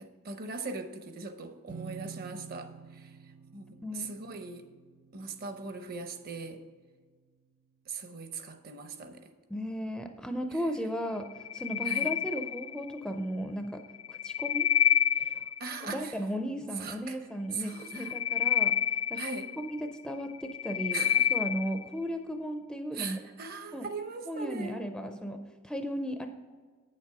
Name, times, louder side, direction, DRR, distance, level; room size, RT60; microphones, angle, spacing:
voice 1, 0.0-3.1 3.5-4.7 5.1-6.6 7.9-9.3 11.9-12.1 15.6-16.2 16.8-17.2 17.5-18.2 19.1-19.5 20.9-21.3 22.9-24.8, right 4 dB, 45° right, 8 dB, 0.7 m, -40 dB
sound 1, 1.7-7.3, right 5 dB, 70° right, 0.4 m, -50 dB
voice 2, 9.5-13.8 14.1-14.7 15.2-15.4 15.8-18.7 19.1-19.2 19.6-23.2 23.7-23.9 24.3-26.3, equal, 5° left, 6 dB, 0.4 m, -35 dB
sound 2, 11.3-13.0 13.9-15.8 17.8-19.9 20.3-21.9, left 10 dB, 70° left, 0.4 m, -28 dB
8.8 x 7.5 x 4.7 m, 1.5 s
head